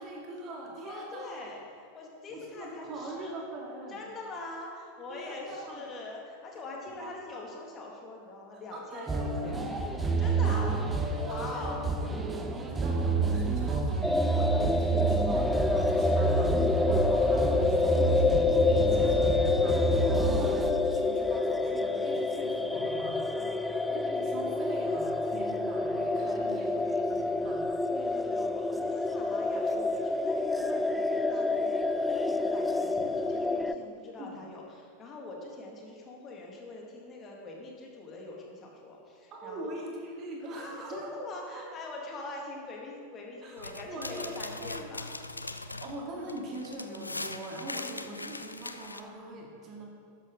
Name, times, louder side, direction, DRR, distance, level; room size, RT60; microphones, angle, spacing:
voice 1, 0.0-1.5 2.3-4.0 5.1-5.8 6.5-7.4 8.7-9.6 10.2-11.9 12.3-23.2 23.6-27.6 34.2-34.4 39.3-41.2 41.5-41.7 43.4-45.0 45.6-49.8, right 1 dB, 35° right, -1 dB, 2.1 m, -42 dB
voice 2, 0.8-3.4 3.9-11.9 20.1-20.4 23.3-23.7 27.9-39.8 40.6-45.2 45.7-45.8, left 2 dB, 25° left, -1 dB, 2.3 m, -43 dB
sound 1, 9.1-20.7, right 3 dB, 15° right, 0.8 m, -29 dB
sound 2, 14.0-33.7, left 3 dB, 5° left, 0.4 m, -28 dB
sound 3, 43.6-49.0, left 2 dB, 80° left, 0.4 m, -40 dB
13.0 x 9.9 x 3.9 m, 2.3 s
figure-of-eight pair, 90°, 0 cm